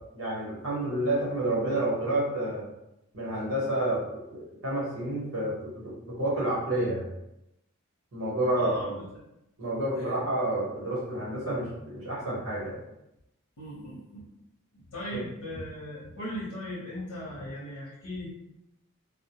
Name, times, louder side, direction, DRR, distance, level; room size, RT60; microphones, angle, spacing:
voice 1, 0.1-2.6 3.1-7.1 8.1-9.0 9.6-12.8 15.1-15.2, right 1 dB, 60° right, -6 dB, 1.0 m, -29 dB
voice 2, 8.5-9.0 9.9-10.3 13.6-14.2 14.9-18.3, equal, 80° left, -6 dB, 0.8 m, -38 dB
2.1 x 2.1 x 2.8 m, 0.86 s
head